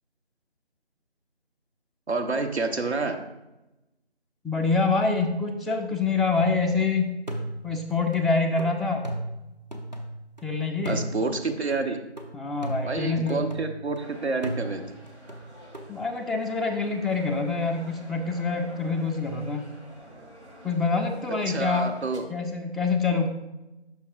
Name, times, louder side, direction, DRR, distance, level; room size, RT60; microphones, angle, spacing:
voice 1, 2.1-3.2 10.9-12.0 12.8-14.8 21.5-22.2, right 3 dB, 70° right, 5 dB, 0.9 m, -28 dB
voice 2, 4.4-7.1 7.6-9.1 10.4-11.0 12.3-13.5 15.9-19.6 20.6-21.9 22.3-23.3, left 4 dB, ahead, 6 dB, 0.4 m, -26 dB
sound 1, 6.3-6.8 7.3-10.4 10.8-14.0 14.4-15.9, right 1 dB, 40° right, 0.6 m, -37 dB
sound 2, 14.0-22.2, right 1 dB, 90° right, 1.9 m, -48 dB
6.0 x 5.4 x 3.7 m, 0.97 s
figure-of-eight pair, 180°, 33 cm